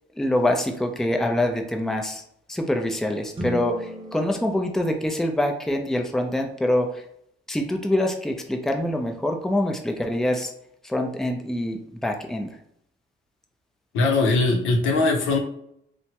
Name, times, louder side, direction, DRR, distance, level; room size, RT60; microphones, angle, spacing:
voice 1, 0.1-2.2 2.5-7.0 7.5-10.5 10.8-12.6, left 1 dB, ahead, 3 dB, 0.4 m, -25 dB
sound 1, 3.3-5.8, right 1 dB, 30° right, 0.7 m, -37 dB
voice 2, 13.9-15.4, left 3 dB, 90° left, 2 dB, 0.7 m, -20 dB
2.9 x 2.2 x 2.8 m, 0.71 s
cardioid pair, 90°, 20 cm